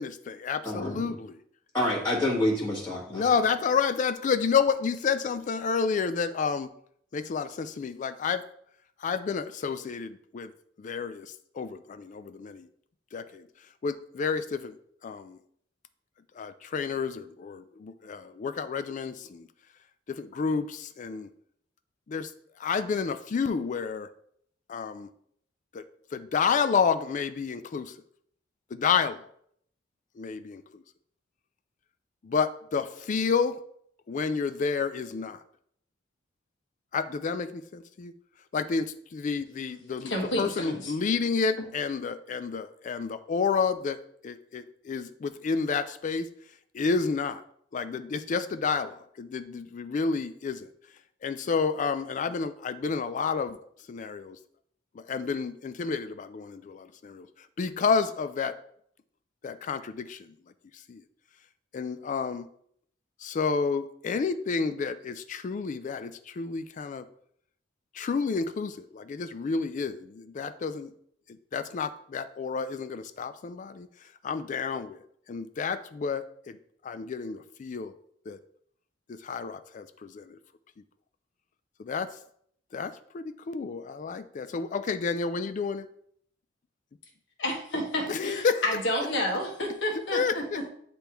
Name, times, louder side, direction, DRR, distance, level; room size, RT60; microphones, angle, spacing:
voice 1, 0.0-1.4 3.1-6.7 7.1-8.4 9.0-10.5 10.8-12.7 13.1-13.4 13.8-14.8 15.0-15.4 16.4-19.5 20.1-21.3 22.1-22.3 22.6-24.1 24.7-25.1 25.7-25.8 26.1-27.9 28.7-29.2 30.2-30.6 32.2-33.5 34.1-35.4 36.9-38.1 38.5-40.1 40.4-46.3 46.7-47.4 47.7-50.7 51.2-53.6 53.9-54.4 55.1-57.3 57.6-58.5 59.4-60.3 60.9-61.0 61.7-62.5 63.2-67.1 67.9-70.9 71.5-73.9 74.2-75.0 75.3-76.6 76.8-78.0 78.3-78.4 79.1-80.4 81.8-82.1 82.7-85.9 88.1-88.6 90.1-90.6, left 5 dB, 40° left, 11 dB, 0.3 m, -30 dB
voice 2, 0.6-1.2 1.7-3.3, left 1 dB, 15° left, -8 dB, 1.4 m, -28 dB
voice 3, 40.0-40.9 87.4-90.4, left 1 dB, 70° left, 1 dB, 1.4 m, -30 dB
9.8 x 3.4 x 3.0 m, 0.66 s
head